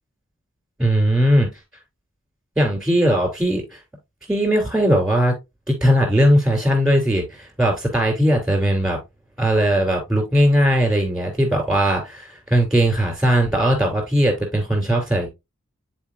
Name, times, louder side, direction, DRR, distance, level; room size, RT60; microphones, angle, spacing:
voice 1, 0.8-1.5 2.6-3.8 4.3-5.3 5.7-9.0 9.4-15.3, equal, 5° right, 2.8 m, -19 dB
10.5 x 4.4 x 2.4 m
head